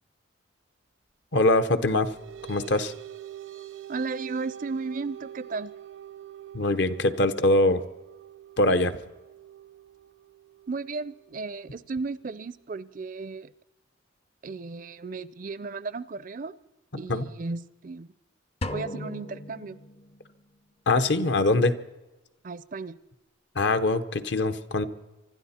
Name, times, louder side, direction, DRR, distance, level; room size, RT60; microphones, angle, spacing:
voice 1, 1.3-2.1 2.5-2.9 6.5-7.8 8.6-9.0 17.1-17.3 20.9-21.7 23.6-24.9, left 2 dB, 60° left, 11 dB, 0.9 m, -23 dB
sound 1, 1.7-12.6, right 11 dB, 85° right, 0.8 m, -45 dB
voice 2, 3.9-5.7 10.7-13.5 14.4-16.5 17.0-18.1 18.7-19.8 22.4-23.0, right 4 dB, 45° right, 18 dB, 0.4 m, -34 dB
sound 2, 18.6-20.4, left 1 dB, 30° left, 0.5 m, -36 dB
25.0 x 12.0 x 4.3 m, 1.0 s
head